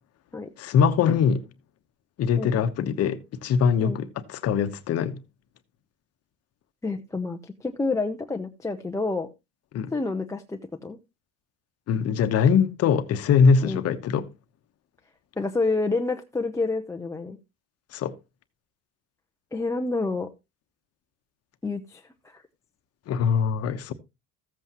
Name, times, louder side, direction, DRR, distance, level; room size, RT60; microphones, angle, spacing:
voice 1, 0.6-1.5 2.2-5.2 9.7-9.9 11.9-14.3 17.9-18.1 23.1-23.9, left 6 dB, 50° left, 1.0 m, -22 dB
voice 2, 6.8-9.3 9.9-11.0 13.6-13.8 15.4-17.4 19.5-20.3 21.6-22.4, left 3 dB, 10° left, 0.6 m, -28 dB
14.5 x 8.0 x 2.9 m
cardioid pair, 125°, 33 cm